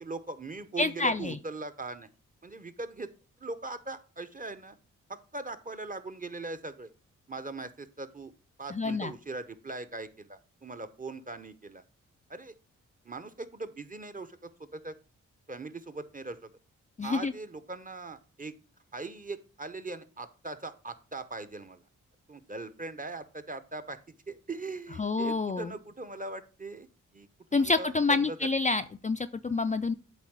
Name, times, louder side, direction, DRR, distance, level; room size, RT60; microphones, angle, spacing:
voice 1, 0.0-2.1 2.4-3.1 3.4-4.8 5.1-6.9 7.3-8.3 8.6-11.8 12.3-12.5 13.0-14.9 15.5-16.5 17.0-18.5 18.9-21.8 22.3-26.9 27.1-28.5, right 3 dB, 25° right, 11 dB, 0.9 m, -40 dB
voice 2, 0.8-1.4 8.7-9.1 17.0-17.3 25.0-25.7 27.5-30.0, left 3 dB, 25° left, 9 dB, 0.4 m, -28 dB
8.3 x 3.6 x 4.8 m, 0.36 s
supercardioid pair, 45°, 33 cm